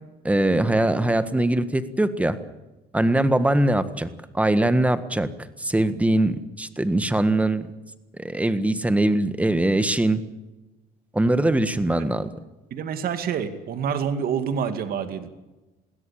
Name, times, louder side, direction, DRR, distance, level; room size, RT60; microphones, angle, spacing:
voice 1, 0.2-2.4 2.9-4.1 4.3-5.3 5.6-7.7 8.2-10.2 11.1-12.3, right 1 dB, 10° right, 11 dB, 1.6 m, -21 dB
voice 2, 12.7-15.3, right 7 dB, 60° right, 9 dB, 2.3 m, -27 dB
21.0 x 16.5 x 8.8 m, 1.1 s
cardioid pair, 110°, 17 cm